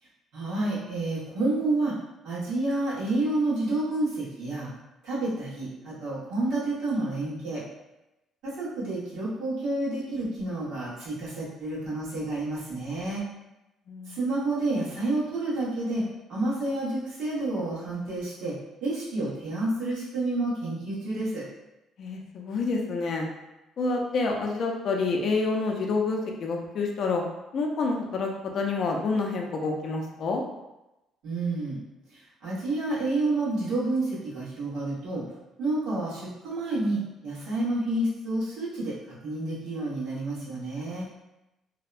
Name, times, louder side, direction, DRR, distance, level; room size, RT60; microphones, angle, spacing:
voice 1, 0.3-1.9 2.2-4.7 5.0-7.6 8.4-13.2 14.1-16.0 16.3-21.5 31.2-31.8 32.1-35.2 35.6-38.9 39.2-41.0, right 2 dB, 80° right, -8 dB, 1.1 m, -29 dB
voice 2, 13.9-14.2 22.0-23.3 23.8-27.2 27.5-30.4, left 3 dB, 50° left, 1 dB, 0.4 m, -28 dB
2.7 x 2.1 x 2.4 m, 0.96 s
cardioid pair, 135°, 0 cm